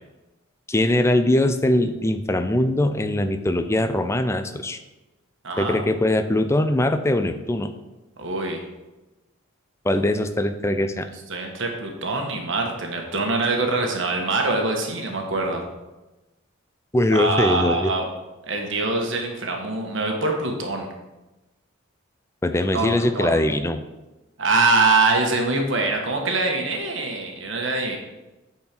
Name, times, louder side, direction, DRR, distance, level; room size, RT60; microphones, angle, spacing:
voice 1, 0.7-4.8 5.6-7.7 9.8-11.1 16.9-17.9 22.4-23.8, left 1 dB, 15° left, 8 dB, 0.5 m, -21 dB
voice 2, 5.4-5.8 8.2-8.6 11.3-15.6 17.1-18.1 18.4-20.9 22.7-23.4 24.4-28.0, right 3 dB, 65° right, 2 dB, 1.3 m, -24 dB
8.8 x 4.5 x 6.0 m, 1.1 s
head